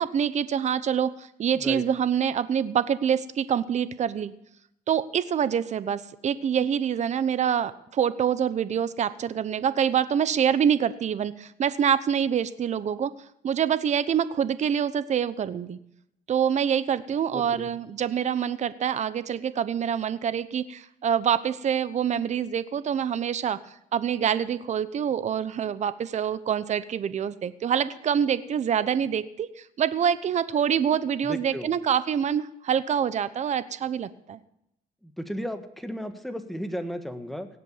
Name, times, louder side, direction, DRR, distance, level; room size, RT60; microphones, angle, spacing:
voice 1, 0.0-4.3 4.9-13.1 13.4-15.8 16.3-23.6 23.9-34.4, right 8 dB, 45° right, 15 dB, 0.9 m, -26 dB
voice 2, 17.3-17.8 31.2-31.7 35.0-37.5, equal, ahead, 7 dB, 1.5 m, -34 dB
17.5 x 8.0 x 7.3 m, 0.77 s
cardioid pair, 110°, 17 cm